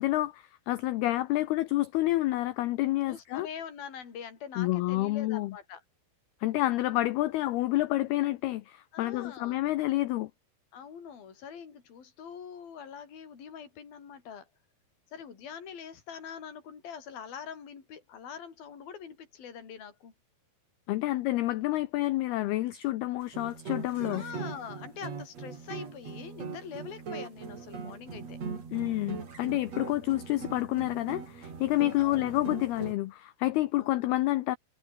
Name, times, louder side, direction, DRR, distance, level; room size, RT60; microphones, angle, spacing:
voice 1, 0.0-3.5 4.6-5.5 6.4-10.3 20.9-24.2 28.7-34.6, left 16 dB, 85° left, 2.2 m, -29 dB
voice 2, 3.1-5.8 8.9-9.6 10.7-14.5 15.1-20.1 24.1-28.4 32.0-32.3 33.8-34.0, left 7 dB, 50° left, 6.1 m, -44 dB
sound 1, 23.2-32.9, right 5 dB, 35° right, 4.5 m, -41 dB
omnidirectional pair, 5.6 m